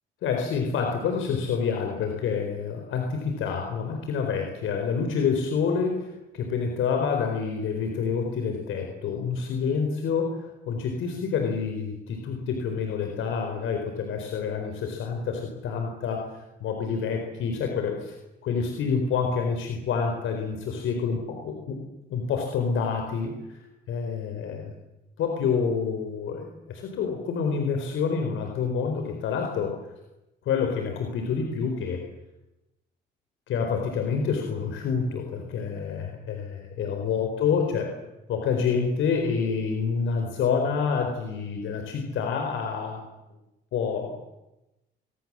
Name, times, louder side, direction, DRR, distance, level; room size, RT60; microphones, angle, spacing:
voice 1, 0.2-16.3 16.6-18.2 18.4-21.7 22.1-23.6 23.9-24.7 25.2-29.8 30.4-32.0 33.5-37.9 38.3-43.1 43.7-44.2, left 6 dB, 80° left, 3 dB, 4.4 m, -28 dB
23.5 x 21.0 x 7.6 m, 0.96 s
cardioid pair, 90°, 20 cm